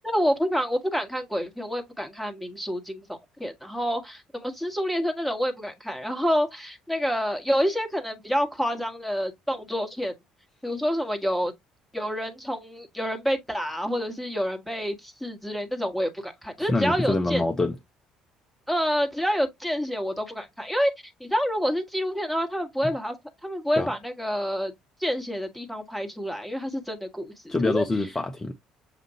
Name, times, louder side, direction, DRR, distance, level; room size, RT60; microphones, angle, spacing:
voice 1, 0.0-10.1 10.6-11.5 11.9-17.4 18.7-20.9 21.2-23.1 23.4-24.7 25.0-27.8, equal, ahead, 1.3 m, -28 dB
voice 2, 16.6-17.7 23.8-23.9 27.5-28.5, left 2 dB, 20° left, 0.7 m, -25 dB
6.7 x 2.5 x 2.8 m
figure-of-eight pair, 55°, 2 cm